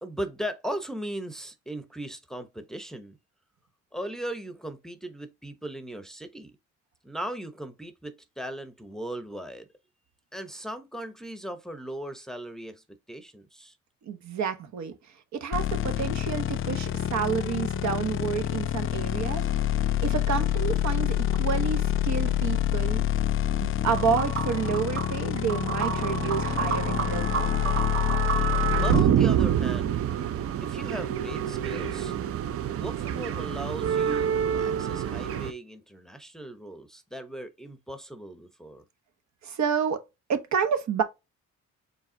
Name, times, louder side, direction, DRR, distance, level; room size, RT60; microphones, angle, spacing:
voice 1, 0.0-3.2 3.9-6.5 7.0-9.7 10.3-13.8 28.7-30.0 30.6-32.1 32.8-38.8, right 1 dB, ahead, 0.7 m, -38 dB
voice 2, 14.1-14.9 15.3-19.5 20.0-23.0 23.6-27.5 39.4-40.0 40.3-41.0, right 7 dB, 65° right, 1.1 m, -29 dB
sound 1, 15.5-29.0, left 11 dB, 45° left, 0.4 m, -27 dB
sound 2, 23.9-35.5, right 9 dB, 50° right, 0.5 m, -28 dB
4.7 x 3.4 x 2.7 m
cardioid pair, 90°, 30 cm